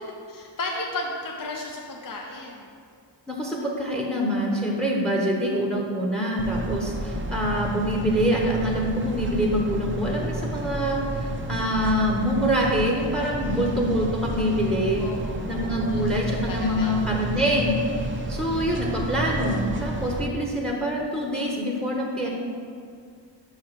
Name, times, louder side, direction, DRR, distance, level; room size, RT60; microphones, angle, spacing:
voice 1, 0.3-2.7 6.9-7.1 13.3-13.7 15.0-16.9 18.4-18.8, left 2 dB, 45° left, 0 dB, 0.7 m, -35 dB
voice 2, 3.3-15.1 15.5-17.8 18.3-22.3, equal, ahead, -1 dB, 0.9 m, -25 dB
sound 1, 6.4-20.3, right 2 dB, 25° right, 0.5 m, -31 dB
5.6 x 4.9 x 5.7 m, 2.3 s
wide cardioid pair, 85°, 46 cm